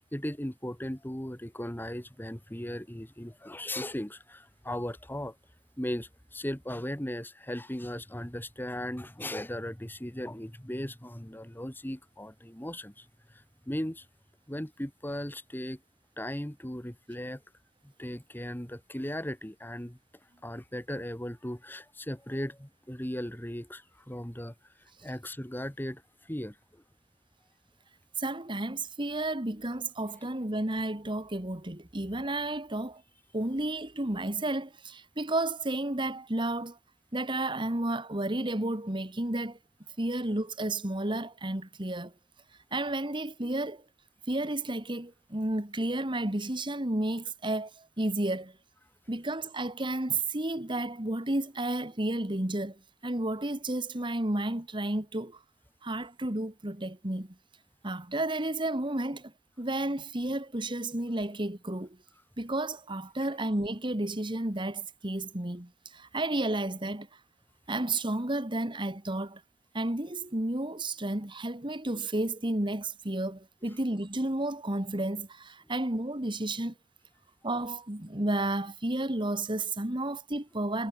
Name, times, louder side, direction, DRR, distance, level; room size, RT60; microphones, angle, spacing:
voice 1, 0.0-5.4 5.8-14.1 14.5-15.8 16.2-17.4 17.8-20.0 20.4-24.5 25.0-26.8 73.6-73.7, left 1 dB, 10° left, 1.9 m, -37 dB
voice 2, 28.2-33.0 33.3-36.8 37.1-39.6 40.0-42.1 42.7-43.8 44.3-48.6 49.1-55.4 55.8-57.4 57.8-62.0 62.4-67.1 67.7-69.4 69.7-76.7 77.4-80.9, right 1 dB, 25° right, 1.9 m, -32 dB
head